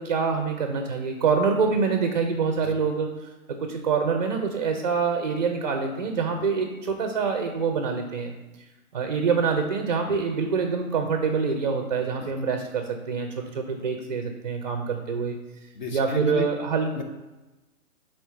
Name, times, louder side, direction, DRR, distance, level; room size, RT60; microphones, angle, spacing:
voice 1, 0.0-3.1 3.5-8.3 8.9-15.4 15.9-16.9, right 5 dB, 35° right, 5 dB, 0.5 m, -25 dB
voice 2, 15.7-16.5 16.9-17.0, left 1 dB, 30° left, 4 dB, 0.8 m, -31 dB
4.7 x 4.3 x 5.5 m, 1.1 s
hypercardioid pair, 155°, 43 cm